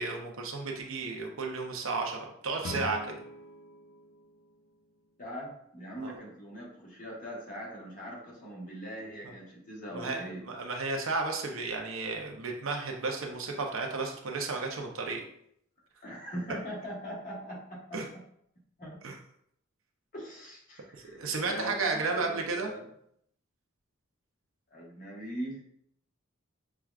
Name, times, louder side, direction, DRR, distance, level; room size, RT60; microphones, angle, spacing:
voice 1, 0.0-3.2 6.0-6.1 9.9-15.2 17.9-18.0 19.0-19.1 20.9-22.7, right 3 dB, 75° right, 2 dB, 0.7 m, -33 dB
Guitar, 2.6-5.4, left 1 dB, 75° left, 0.6 m, -43 dB
voice 2, 5.2-10.4 16.0-18.2 18.8-19.1 20.1-22.8 24.7-25.6, equal, 40° left, -4 dB, 1.3 m, -41 dB
6.0 x 2.3 x 2.4 m, 0.70 s
head